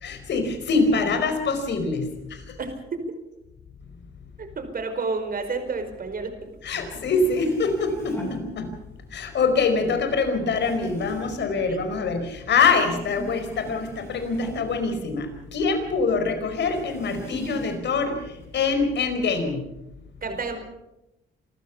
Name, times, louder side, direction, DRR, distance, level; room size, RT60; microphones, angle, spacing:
voice 1, 0.0-2.4 6.6-8.7 9.1-19.7, left 4 dB, 60° left, 7 dB, 4.9 m, -24 dB
voice 2, 2.6-3.1 4.4-6.4 11.5-11.8 20.2-20.6, right 4 dB, 45° right, 7 dB, 4.9 m, -30 dB
sound 1, 6.6-6.7 6.9-9.1 9.5-12.4 12.7-15.7 16.0-16.1 16.5-18.0 18.4-19.2, equal, 10° left, 7.2 m, -41 dB
26.5 x 14.5 x 7.2 m, 0.92 s
cardioid pair, 90°, 20 cm